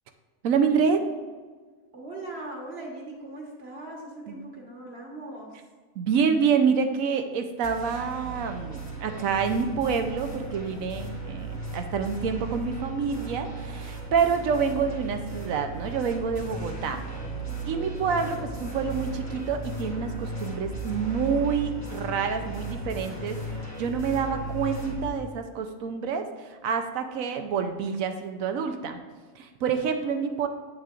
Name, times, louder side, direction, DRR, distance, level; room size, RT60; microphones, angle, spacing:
voice 1, 0.4-1.0 4.3-4.4 6.0-17.0 17.6-23.4 23.8-29.0 29.3-30.5, right 6 dB, 85° right, 6 dB, 1.1 m, -27 dB
voice 2, 1.9-5.6, right 2 dB, 50° right, -2 dB, 1.6 m, -40 dB
sound 1, 7.6-25.1, right 2 dB, 15° left, 1.0 m, -36 dB
8.2 x 6.5 x 2.5 m, 1.5 s
omnidirectional pair, 1.4 m